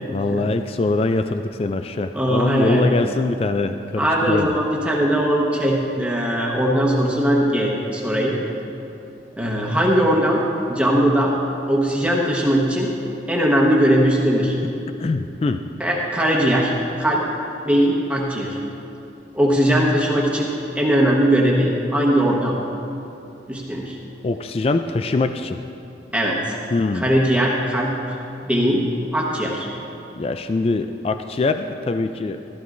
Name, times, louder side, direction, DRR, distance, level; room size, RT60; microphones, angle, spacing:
voice 1, 0.0-4.5 15.0-15.6 24.2-25.6 26.7-27.1 30.2-32.4, left 3 dB, 35° left, 9 dB, 0.3 m, -23 dB
voice 2, 2.1-2.9 4.0-8.3 9.4-10.4 10.7-11.3 11.7-12.9 13.3-14.6 15.8-16.7 17.0-17.2 17.6-18.6 19.3-20.5 20.7-22.6 23.5-24.0 26.1-26.4 26.9-27.9 28.4-28.8 29.1-29.7, equal, 5° right, -3 dB, 1.2 m, -19 dB
15.5 x 13.0 x 2.6 m, 2.7 s
head